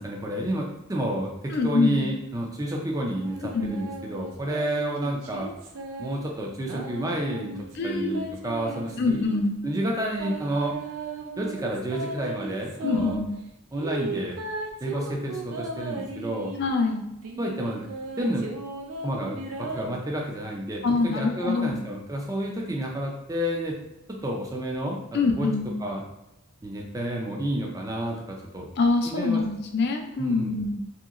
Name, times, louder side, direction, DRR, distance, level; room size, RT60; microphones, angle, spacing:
voice 1, 0.0-5.5 6.0-7.5 7.8-9.2 9.6-10.7 11.4-13.2 13.7-14.4 14.8-16.5 17.4-17.9 18.2-18.5 19.0-23.8 24.2-25.5 25.8-26.0 26.6-28.2 28.5-28.7 29.1-29.4 30.2-30.5, right 1 dB, 15° right, 0 dB, 0.4 m, -30 dB
voice 2, 1.5-2.0 3.5-3.8 7.7-8.2 9.0-9.6 12.8-13.4 16.6-17.0 20.8-21.8 25.1-25.7 28.8-30.8, left 3 dB, 50° left, 3 dB, 0.4 m, -25 dB
sound 1, 3.1-6.2 6.6-9.4 10.2-13.2 13.7-16.7 17.2-19.8, right 3 dB, 85° right, 0.4 m, -36 dB
2.8 x 2.8 x 2.4 m, 0.92 s
head